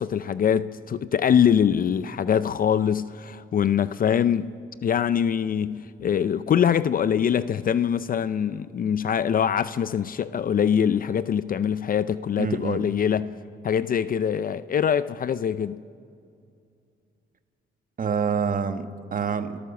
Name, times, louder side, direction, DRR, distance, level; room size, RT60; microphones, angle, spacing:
voice 1, 0.0-4.5 4.8-13.3 13.6-15.8, left 8 dB, 45° left, 0.5 m, -23 dB
voice 2, 12.4-12.8 18.0-19.6, right 6 dB, 45° right, 1.3 m, -27 dB
29.5 x 14.0 x 7.0 m
cardioid pair, 90°, 20 cm